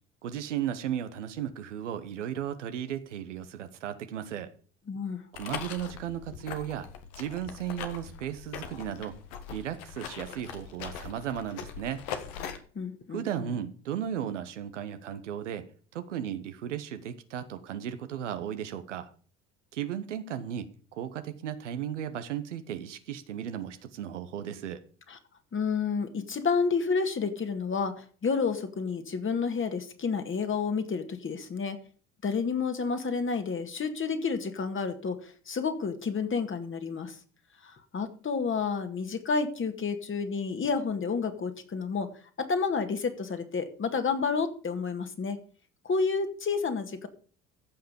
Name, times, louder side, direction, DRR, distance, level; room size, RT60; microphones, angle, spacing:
voice 1, 0.2-4.5 5.3-6.9 7.2-9.1 9.5-12.0 13.1-15.6 15.9-19.1 19.7-20.7 20.9-24.8, right 10 dB, 90° right, 9 dB, 1.1 m, -35 dB
voice 2, 4.9-5.2 12.8-13.3 25.1-25.2 25.5-31.8 32.2-37.2 37.6-42.1 42.4-45.4 45.8-47.1, left 5 dB, 35° left, 7 dB, 2.0 m, -30 dB
sound 1, 5.3-12.6, left 8 dB, 75° left, 1.5 m, -41 dB
15.0 x 5.8 x 5.2 m, 0.42 s
hypercardioid pair, 65°, 35 cm